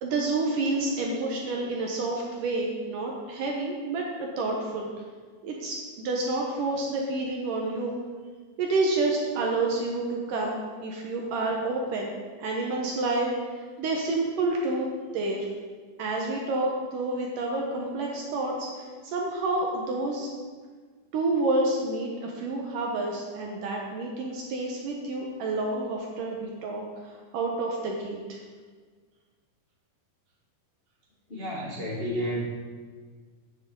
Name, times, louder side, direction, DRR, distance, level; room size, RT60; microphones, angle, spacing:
voice 1, 0.0-4.9 5.4-8.0 8.6-12.1 12.4-14.9 15.1-15.5 16.0-20.3 21.1-28.4, right 2 dB, 70° right, -1 dB, 2.5 m, -29 dB
voice 2, 31.3-32.4, equal, 60° left, -5 dB, 0.6 m, -31 dB
12.0 x 9.8 x 3.8 m, 1.5 s
omnidirectional pair, 4.2 m